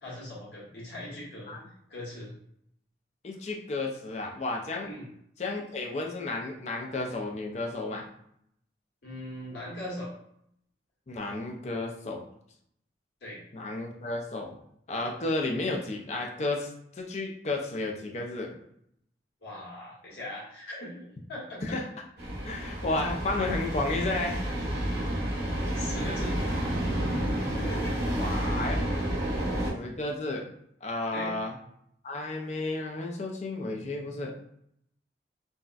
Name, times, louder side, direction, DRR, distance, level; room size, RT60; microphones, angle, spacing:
voice 1, 0.0-1.6 1.9-2.3 4.8-5.0 9.0-10.1 13.2-13.4 19.4-21.8 25.7-26.4 27.3-28.1 31.1-31.3, left 1 dB, 70° left, -6 dB, 1.3 m, -40 dB
voice 2, 3.2-4.9 5.4-8.1 11.1-12.2 13.5-14.6 14.9-16.7 17.0-18.6 21.6-21.9 22.4-24.4 28.2-28.8 29.7-30.5 30.8-31.6 32.0-34.3, left 2 dB, 35° left, 1 dB, 0.4 m, -32 dB
sound 1, 22.2-29.7, right 1 dB, 60° right, 0.7 m, -30 dB
4.0 x 2.2 x 2.3 m, 0.72 s
head